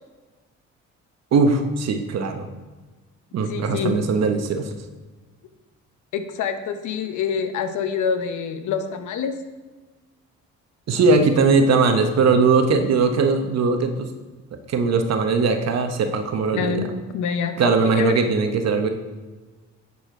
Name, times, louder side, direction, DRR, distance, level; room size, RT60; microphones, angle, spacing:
voice 1, 1.3-2.5 3.3-4.7 10.9-14.1 14.7-16.8 17.6-18.9, right 4 dB, 60° right, 6 dB, 1.0 m, -20 dB
voice 2, 3.5-4.0 6.1-9.3 16.5-16.9 17.1-18.2, left 6 dB, 75° left, 8 dB, 0.8 m, -26 dB
9.3 x 4.3 x 4.9 m, 1.3 s
cardioid pair, 90°, 30 cm